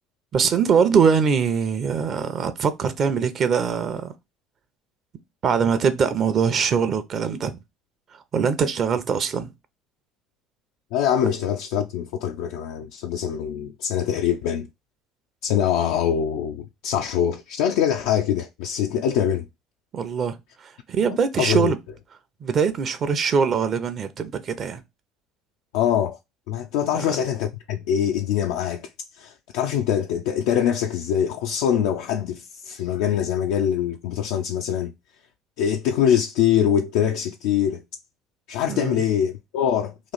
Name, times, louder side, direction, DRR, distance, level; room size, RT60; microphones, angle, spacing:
voice 1, 0.3-4.1 5.4-7.6 8.1-9.5 19.9-21.8 22.4-24.8 26.9-27.0 38.7-39.0, right 6 dB, 45° right, 0.6 m, -22 dB
voice 2, 10.9-14.7 15.4-19.5 21.4-21.7 25.7-26.2 26.5-34.9 35.6-37.8 38.5-40.1, left 9 dB, 75° left, 0.3 m, -23 dB
3.1 x 2.5 x 3.9 m
hypercardioid pair, 70°, 0 cm